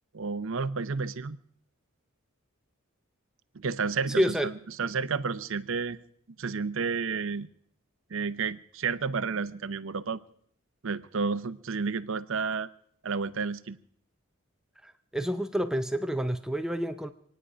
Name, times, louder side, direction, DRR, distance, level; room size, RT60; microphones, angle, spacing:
voice 1, 0.1-1.4 3.5-4.5 4.8-6.0 6.4-7.5 8.1-10.2 10.8-12.7 13.0-13.8, right 5 dB, 65° right, 13 dB, 0.7 m, -31 dB
voice 2, 4.2-4.5 14.8-17.1, equal, 5° right, 7 dB, 0.5 m, -28 dB
26.5 x 9.8 x 5.1 m, 0.67 s
head